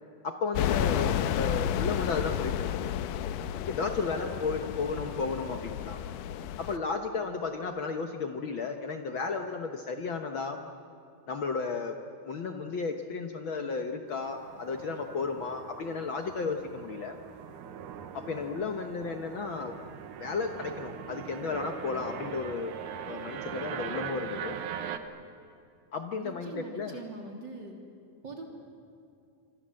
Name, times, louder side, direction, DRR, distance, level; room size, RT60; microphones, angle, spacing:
voice 1, 0.2-2.9 3.6-6.0 6.6-10.6 11.3-12.0 12.2-17.2 18.1-19.8 20.2-22.7 23.1-24.6 25.9-27.0, left 4 dB, 65° left, 5 dB, 1.3 m, -33 dB
sound 1, 0.5-6.8, left 10 dB, 80° left, 2.3 m, -31 dB
sound 2, 14.1-25.0, right 8 dB, 75° right, 2.5 m, -41 dB
voice 2, 26.2-27.8 28.2-28.5, right 3 dB, 35° right, 1 dB, 3.7 m, -42 dB
27.0 x 24.0 x 7.7 m, 2.5 s
omnidirectional pair, 3.7 m